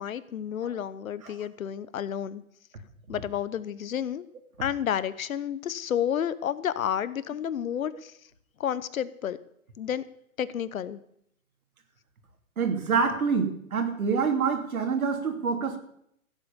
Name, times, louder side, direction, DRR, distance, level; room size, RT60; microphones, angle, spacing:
voice 1, 0.0-2.4 3.1-4.3 4.6-8.1 8.6-9.4 9.8-10.0 10.4-11.0, left 9 dB, 70° left, 17 dB, 1.1 m, -30 dB
voice 2, 12.6-15.8, right 5 dB, 75° right, 5 dB, 3.0 m, -26 dB
15.5 x 8.3 x 7.1 m, 0.73 s
hypercardioid pair, 130°, 43 cm